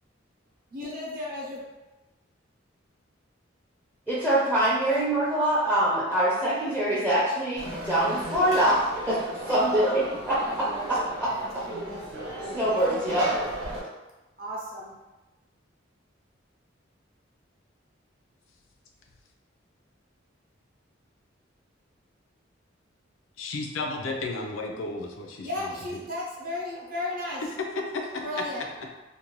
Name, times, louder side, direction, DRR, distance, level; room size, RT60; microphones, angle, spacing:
voice 1, 0.7-1.6 9.4-10.7 11.3-11.9 12.6-13.5 14.4-14.9 25.4-27.4 28.2-28.6, left 1 dB, 45° right, -4 dB, 0.6 m, -35 dB
voice 2, 4.1-9.2 9.5-10.4 10.9-11.6 12.5-13.3, right 1 dB, 5° right, -9 dB, 0.5 m, -24 dB
Conversation / Crowd, 7.6-13.8, right 1 dB, 90° right, 0.8 m, -36 dB
voice 3, 23.4-26.0 28.0-28.2, left 2 dB, 80° left, 2 dB, 0.4 m, -34 dB
2.5 x 2.1 x 3.0 m, 1.1 s
head